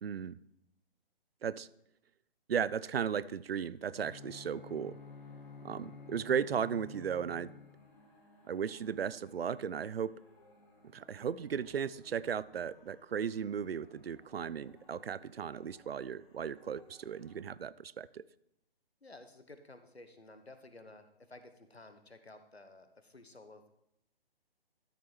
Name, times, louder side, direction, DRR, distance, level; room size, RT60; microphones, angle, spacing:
voice 1, 0.0-0.4 1.4-1.7 2.5-5.0 5.6-7.5 8.5-10.2 10.9-18.2, right 7 dB, 70° right, 0.5 m, -36 dB
sound 1, 3.8-17.4, left 1 dB, 25° left, 2.6 m, -64 dB
Bowed string instrument, 3.9-8.1, left 5 dB, 50° left, 1.1 m, -51 dB
voice 2, 19.0-23.7, left 2 dB, 90° left, 1.2 m, -54 dB
13.0 x 6.0 x 4.5 m
figure-of-eight pair, 135°, 31 cm